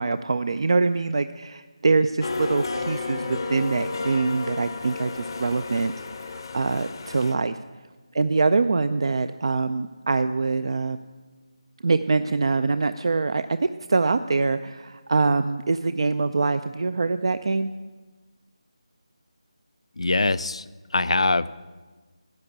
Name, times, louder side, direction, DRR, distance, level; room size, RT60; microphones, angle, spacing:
voice 1, 0.0-5.9 6.2-7.6 8.1-11.0 11.8-17.7, right 3 dB, 55° right, 11 dB, 0.4 m, -24 dB
sound 1, 2.2-7.3, left 3 dB, 45° left, 0.7 m, -32 dB
voice 2, 20.0-20.6 20.9-21.5, left 3 dB, 70° left, 17 dB, 0.4 m, -22 dB
10.5 x 5.9 x 8.4 m, 1.3 s
figure-of-eight pair, 160°, 3 cm